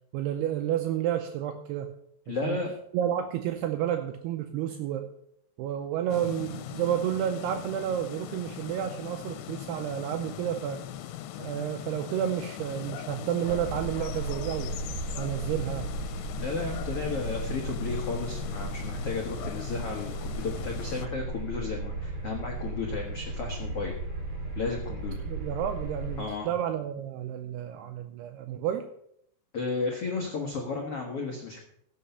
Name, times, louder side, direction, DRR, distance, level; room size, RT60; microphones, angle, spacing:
voice 1, 0.1-1.9 2.3-2.6 2.9-5.1 5.6-10.8 11.4-14.8 15.2-15.9 25.3-28.9, right 10 dB, 80° right, 6 dB, 2.5 m, -31 dB
voice 2, 2.3-2.7 16.4-23.9 24.5-25.1 26.2-26.5 29.5-31.6, left 4 dB, 70° left, 0 dB, 1.4 m, -33 dB
sound 1, 6.1-21.1, left 12 dB, 85° left, 3.0 m, -40 dB
sound 2, 13.5-26.2, right 2 dB, 30° right, 3.7 m, -35 dB
16.5 x 6.5 x 5.6 m, 0.71 s
omnidirectional pair, 5.2 m